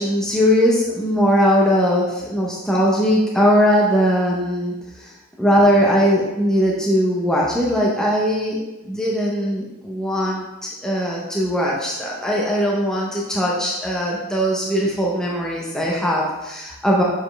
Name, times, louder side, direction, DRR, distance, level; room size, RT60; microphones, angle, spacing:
voice 1, 0.0-5.1 5.4-17.0, equal, 5° left, -4 dB, 0.7 m, -20 dB
7.1 x 4.3 x 3.3 m, 1.0 s
head